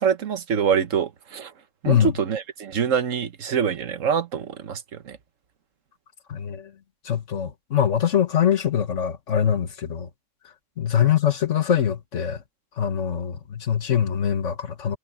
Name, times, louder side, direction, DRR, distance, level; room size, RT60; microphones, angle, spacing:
voice 1, 0.0-1.5 1.8-5.2, right 7 dB, 75° right, 1.4 m, -25 dB
voice 2, 6.3-6.7 7.0-10.1 10.8-12.4 12.8-15.0, left 9 dB, 70° left, 1.7 m, -23 dB
omnidirectional pair, 1.3 m